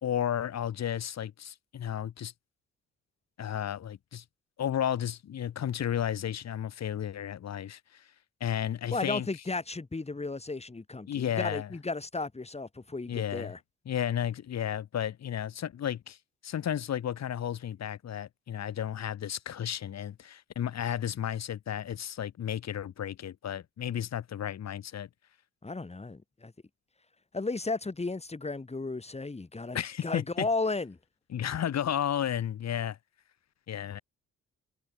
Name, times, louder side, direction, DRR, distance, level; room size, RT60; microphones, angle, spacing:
voice 1, 0.0-2.3 3.4-4.2 4.6-8.0 8.4-9.3 11.1-11.7 13.1-13.5 13.9-16.2 16.4-25.1 29.7-30.5 31.3-33.0 33.7-34.0, left 10 dB, 60° left, 2.6 m, -33 dB
voice 2, 8.9-13.6 25.6-26.5 27.3-31.0, left 3 dB, 20° left, 6.3 m, -34 dB
cardioid pair, 90°, 30 cm